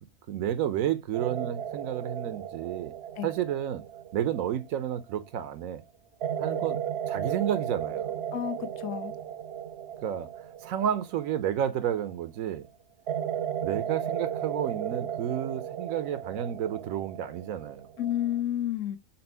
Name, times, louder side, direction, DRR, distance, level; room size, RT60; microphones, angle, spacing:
voice 1, 0.3-2.9 3.2-3.9 4.1-5.8 6.4-6.8 7.1-8.2 10.0-10.3 10.6-12.7 13.6-17.9, right 10 dB, 85° right, 1.1 m, -31 dB
sound 1, 1.1-5.3 6.2-12.2 13.1-18.4, right 9 dB, 65° right, 0.7 m, -35 dB
voice 2, 8.3-9.1 18.0-19.0, left 11 dB, 70° left, 1.0 m, -30 dB
4.3 x 4.1 x 5.4 m
omnidirectional pair, 1.4 m